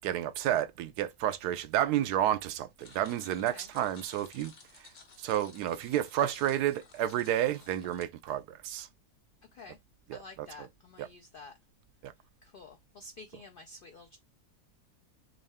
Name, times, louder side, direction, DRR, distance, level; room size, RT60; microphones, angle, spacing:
voice 1, 0.0-4.5 4.8-4.9 5.2-8.9 10.1-10.7 11.0-11.1 12.0-12.1, right 11 dB, 85° right, 1.1 m, -31 dB
sound 1, 2.8-8.0, left 4 dB, 40° left, 0.7 m, -55 dB
voice 2, 10.1-11.5 12.4-14.2, left 3 dB, 85° left, 0.4 m, -50 dB
3.7 x 3.1 x 3.3 m
omnidirectional pair, 1.6 m